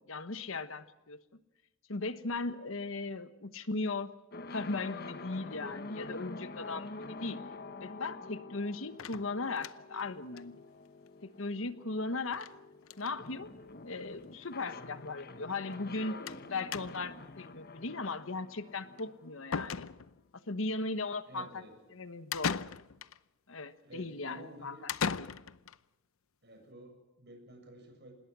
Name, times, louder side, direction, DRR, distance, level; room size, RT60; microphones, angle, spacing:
voice 1, 0.1-1.2 1.9-4.1 4.5-7.4 7.8-10.6 11.2-12.5 13.0-13.5 13.8-16.2 16.5-19.9 20.5-21.6 21.9-22.6 23.5-25.3, left 3 dB, 75° left, 12 dB, 1.3 m, -38 dB
sound 1, 4.3-20.1, left 3 dB, 50° left, 1.2 m, -47 dB
sound 2, 9.0-10.0 10.4-10.5 10.7-10.8 11.1-11.2 12.3-12.6 12.8-13.2 14.1-14.2 14.4-14.5 16.3-16.4 16.7-17.2 19.0-19.1 19.5-20.3 22.3-23.2 24.9-25.8, left 6 dB, 90° left, 0.7 m, -37 dB
voice 2, 21.3-21.7 23.8-24.8 26.4-28.1, right 1 dB, 55° right, 5 dB, 7.0 m, -51 dB
26.0 x 20.5 x 6.2 m, 1.0 s
head